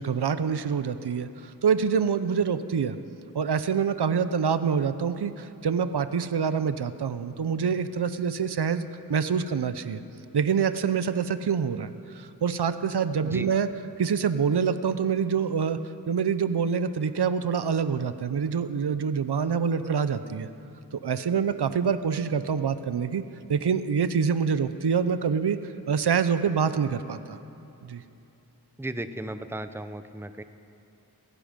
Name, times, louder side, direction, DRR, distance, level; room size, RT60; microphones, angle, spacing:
voice 1, 0.0-3.0 3.3-10.0 10.3-13.7 14.0-15.8 16.1-20.5 20.9-23.2 23.5-25.6 25.9-27.4 27.8-28.0, right 6 dB, 80° right, 12 dB, 0.7 m, -26 dB
voice 2, 28.8-30.4, right 1 dB, 5° right, 10 dB, 0.7 m, -35 dB
17.0 x 16.5 x 5.2 m, 3.0 s
wide cardioid pair, 50°, 39 cm